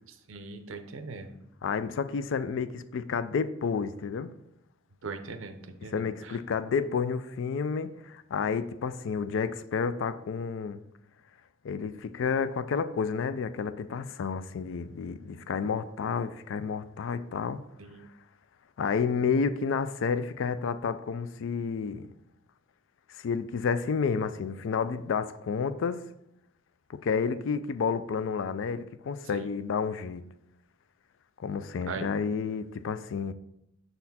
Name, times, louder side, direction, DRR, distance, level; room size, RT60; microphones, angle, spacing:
voice 1, 0.3-1.4 5.0-6.4 17.8-18.1 29.3-29.5 31.9-32.1, right 4 dB, 70° right, 0.6 m, -40 dB
voice 2, 1.6-4.3 5.8-10.8 11.6-17.6 18.8-22.1 23.2-26.1 26.9-30.2 31.4-33.3, left 5 dB, 65° left, 0.4 m, -30 dB
6.7 x 4.2 x 4.1 m
head